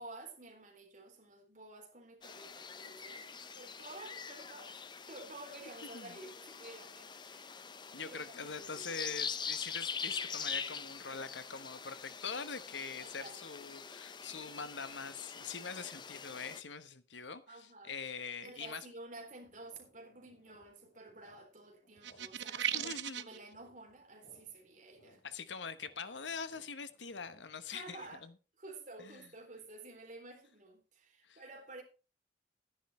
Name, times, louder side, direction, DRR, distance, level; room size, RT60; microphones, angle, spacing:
voice 1, 0.0-7.6 8.0-8.9 13.0-13.4 14.3-14.5 15.7-16.2 17.5-17.9 18.4-25.2 27.7-28.3 28.6-31.8, right 2 dB, 45° right, 3.6 m, -52 dB
sound 1, 2.2-16.6, left 6 dB, 25° left, 0.6 m, -44 dB
voice 2, 7.9-18.9 22.7-23.3 25.2-28.3 29.0-29.1 31.2-31.4, left 5 dB, 85° left, 1.1 m, -43 dB
sound 2, 19.1-28.3, equal, 55° left, 3.8 m, -65 dB
sound 3, 22.0-23.4, right 10 dB, 75° right, 0.7 m, -36 dB
12.0 x 10.0 x 4.3 m
head